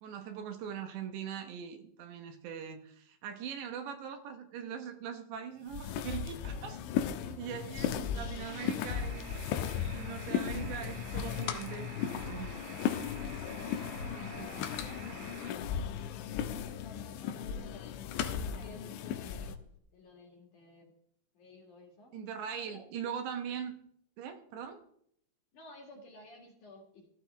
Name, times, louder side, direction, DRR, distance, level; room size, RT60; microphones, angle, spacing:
voice 1, 0.0-9.4 9.9-12.5 14.2-14.5 22.1-23.7 24.2-24.8, right 8 dB, 75° right, 6 dB, 3.3 m, -41 dB
sound 1, 5.6-19.6, left 8 dB, 90° left, 3.2 m, -36 dB
sound 2, 8.4-15.5, right 5 dB, 55° right, 3.1 m, -49 dB
sound 3, 10.9-19.8, left 9 dB, 70° left, 2.5 m, -48 dB
voice 2, 13.6-14.6 15.6-19.5 19.9-20.9 21.3-22.2 22.5-22.9 25.5-27.1, left 2 dB, 55° left, 1 dB, 2.9 m, -54 dB
14.0 x 14.0 x 3.4 m, 0.68 s
omnidirectional pair, 5.2 m